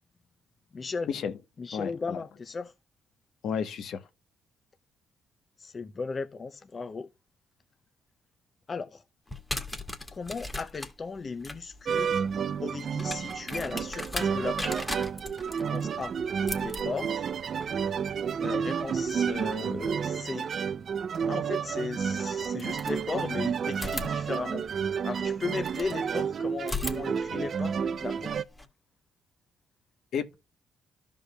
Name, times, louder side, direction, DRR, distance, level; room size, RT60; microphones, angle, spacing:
voice 1, 0.7-1.1 1.6-2.7 5.6-7.1 8.7-9.0 10.1-12.2 12.6-14.8 15.7-16.1 16.6-17.3 18.4-20.5 21.3-24.6 25.0-28.3, left 4 dB, 35° left, 0.6 m, -36 dB
voice 2, 1.7-2.2 3.4-4.0 30.1-30.4, left 7 dB, 70° left, 1.0 m, -32 dB
sound 1, 9.3-20.1 21.6-21.7 22.4-23.3 23.7-26.0 26.6-28.6, left 2 dB, 15° left, 1.8 m, -40 dB
sound 2, 11.8-28.4, right 7 dB, 55° right, 0.5 m, -31 dB
13.5 x 5.3 x 2.3 m
cardioid pair, 90°, 0 cm